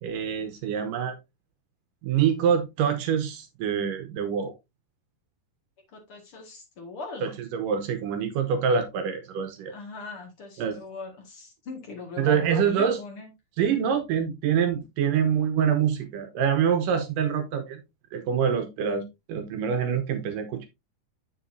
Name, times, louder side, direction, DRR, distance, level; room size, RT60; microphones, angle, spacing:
voice 1, 0.0-1.2 2.0-4.5 7.2-9.7 10.6-10.8 12.2-13.0 13.6-17.8 18.1-20.7, right 7 dB, 70° right, 2.3 m, -25 dB
voice 2, 5.9-7.3 9.7-13.3, left 3 dB, 45° left, 2.1 m, -40 dB
7.2 x 7.2 x 2.6 m
omnidirectional pair, 4.3 m